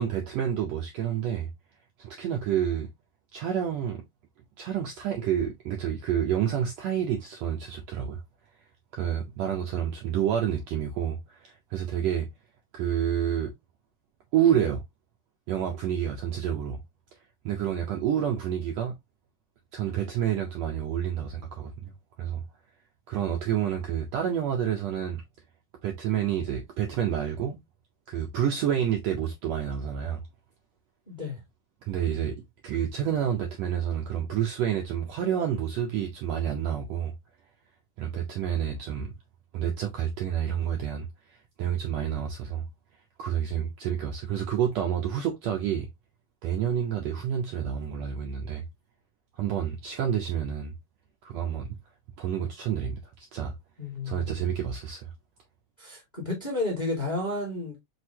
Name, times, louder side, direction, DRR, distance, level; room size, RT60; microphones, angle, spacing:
voice 1, 0.0-1.5 2.0-2.9 3.3-4.0 4.6-8.2 8.9-12.3 12.7-13.5 14.3-14.8 15.5-16.8 17.4-18.9 19.7-21.9 22.2-22.4 23.1-25.2 25.8-27.6 28.1-30.2 31.8-32.4 32.6-37.1 38.0-39.1 39.5-42.6 43.2-45.9 46.4-48.7 49.4-50.7 51.2-51.7 52.2-53.0 53.3-53.5 54.0-55.1, right 9 dB, 70° right, 1.6 m, -29 dB
voice 2, 31.1-31.4 53.8-54.5 55.8-57.7, left 2 dB, 20° left, 1.3 m, -32 dB
6.0 x 2.8 x 2.8 m
omnidirectional pair, 3.7 m